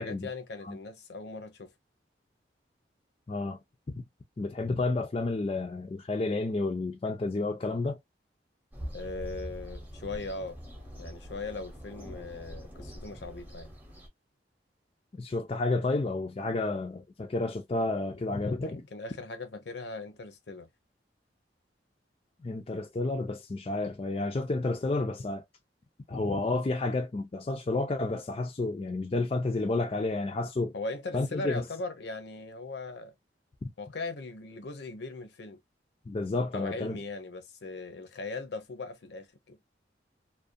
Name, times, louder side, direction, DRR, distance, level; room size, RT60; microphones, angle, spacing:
voice 1, 0.0-1.7 8.9-10.6 11.0-13.7 18.4-20.7 30.7-33.1 33.8-35.6 36.5-39.6, left 3 dB, 70° left, 0.6 m, -39 dB
voice 2, 3.3-3.6 3.9-4.0 4.4-8.0 15.1-18.8 22.4-25.4 26.1-30.7 31.1-31.6 36.1-37.0, left 2 dB, 30° left, 0.4 m, -30 dB
sound 1, 8.7-14.1, equal, 10° right, 0.7 m, -43 dB
2.4 x 2.1 x 2.5 m
head